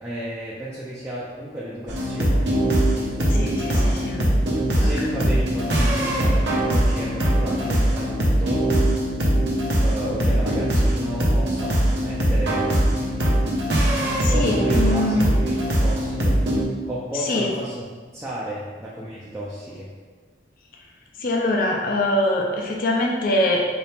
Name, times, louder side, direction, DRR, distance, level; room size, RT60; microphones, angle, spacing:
voice 1, 0.0-2.6 2.9-4.0 4.8-8.7 9.8-13.3 14.3-16.4 16.9-17.8 18.1-19.9, equal, 15° right, -8 dB, 0.5 m, -32 dB
sound 1, 1.9-16.6, right 1 dB, 75° right, 0.8 m, -21 dB
voice 2, 3.3-4.2 4.8-5.1 14.2-15.3 17.2-17.5 21.2-23.7, left 1 dB, 50° left, 0 dB, 0.5 m, -23 dB
4.2 x 2.9 x 3.4 m, 1.5 s
head